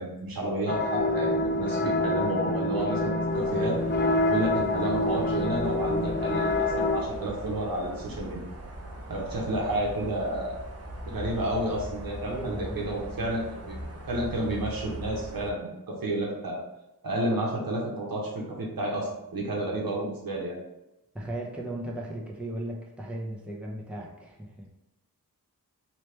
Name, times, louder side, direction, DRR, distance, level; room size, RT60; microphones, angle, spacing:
voice 1, 0.0-3.8 4.3-8.4 9.1-10.6 11.1-13.8 14.1-16.6 17.0-20.6, right 1 dB, 65° right, -2 dB, 1.0 m, -31 dB
sound 1, 0.7-7.0, left 2 dB, 30° left, 0.4 m, -27 dB
sound 2, 3.3-15.5, right 1 dB, 40° right, 0.8 m, -40 dB
voice 2, 12.3-13.4 21.1-24.7, right 1 dB, 5° right, -2 dB, 0.7 m, -37 dB
3.1 x 3.0 x 3.3 m, 0.93 s
cardioid pair, 55°, 37 cm